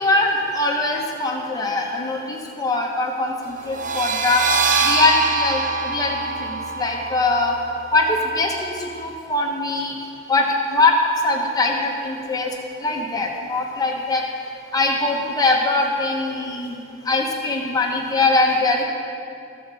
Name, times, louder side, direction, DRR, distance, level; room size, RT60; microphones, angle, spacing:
voice 1, 0.0-4.4 4.8-7.6 7.9-10.0 10.3-10.9 11.2-12.5 12.8-14.2 14.7-16.8 17.0-18.8, left 2 dB, 20° left, 0 dB, 1.2 m, -22 dB
sound 1, 3.7-9.1, right 4 dB, 40° right, 0.7 m, -25 dB
14.0 x 4.7 x 6.8 m, 2.5 s
head